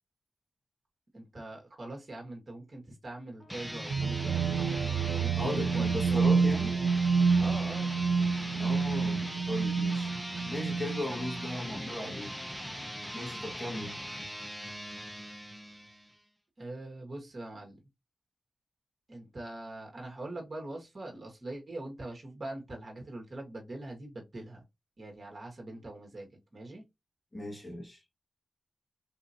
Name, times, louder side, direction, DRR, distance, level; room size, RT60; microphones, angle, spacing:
voice 1, 1.1-6.2 7.4-7.9 16.6-17.8 19.1-24.6 25.0-26.8, right 2 dB, 45° right, 1.4 m, -43 dB
sound 1, 3.4-16.2, equal, 5° left, 0.7 m, -41 dB
sound 2, 3.9-11.6, right 5 dB, 80° right, 0.3 m, -28 dB
voice 2, 5.4-6.8 8.6-10.1 10.5-12.4 13.1-14.0 27.3-28.0, left 1 dB, 25° left, 1.6 m, -37 dB
3.7 x 2.8 x 2.7 m
cardioid pair, 65°, 0 cm